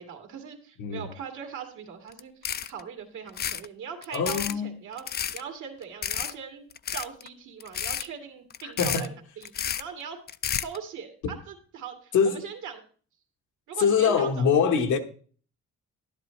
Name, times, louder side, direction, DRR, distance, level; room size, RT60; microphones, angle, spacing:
voice 1, 0.0-10.2 10.5-12.8 13.7-14.5, right 7 dB, 80° right, 2.2 m, -40 dB
sound 1, 2.1-2.2 2.4-2.8 3.3-3.7 4.0-4.5 5.0-5.4 6.0-6.3 6.7-7.3 7.6-8.1 8.5-9.1 9.4-9.8 10.3-10.8, left 9 dB, 35° left, 0.4 m, -31 dB
voice 2, 4.1-4.7 8.6-9.1 12.1-12.4 13.8-15.0, left 6 dB, 80° left, 1.3 m, -23 dB
11.0 x 10.5 x 3.1 m
cardioid pair, 90°, 30 cm